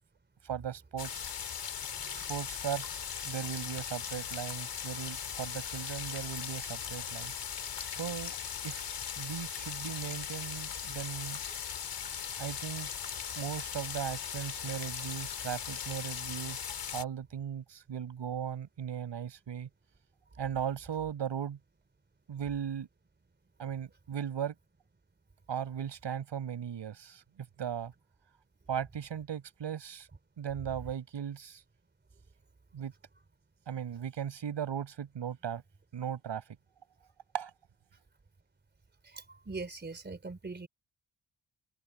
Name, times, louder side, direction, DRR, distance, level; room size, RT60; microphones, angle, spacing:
voice 1, 0.4-1.4 2.3-7.3 7.9-8.4 8.6-11.4 12.4-12.9 13.4-19.7 20.4-21.6 22.3-22.9 23.6-24.5 25.5-27.9 28.7-30.1 30.4-31.6 32.7-32.9 33.7-35.6 35.9-36.4 37.3-37.5, right 8 dB, 75° right, 5.6 m, -37 dB
sound 1, 1.0-17.0, left 8 dB, 65° left, 4.4 m, -39 dB
voice 2, 1.9-2.3 39.0-40.7, right 3 dB, 25° right, 3.7 m, -42 dB
wide cardioid pair, 160°, 44 cm